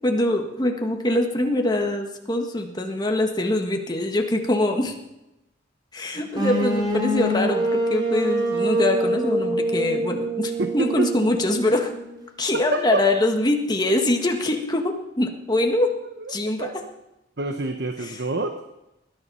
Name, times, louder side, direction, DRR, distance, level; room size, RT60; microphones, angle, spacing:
voice 1, 0.0-4.9 5.9-11.9 12.4-15.9 16.3-16.7, left 1 dB, 20° left, 3 dB, 1.7 m, -23 dB
sound 1, 6.3-12.2, right 1 dB, 20° right, 3.3 m, -25 dB
voice 2, 10.6-11.1 12.5-13.0 16.0-16.3 16.6-16.7 17.4-18.6, right 2 dB, 60° right, 6 dB, 1.1 m, -27 dB
20.5 x 10.5 x 5.6 m, 0.93 s
head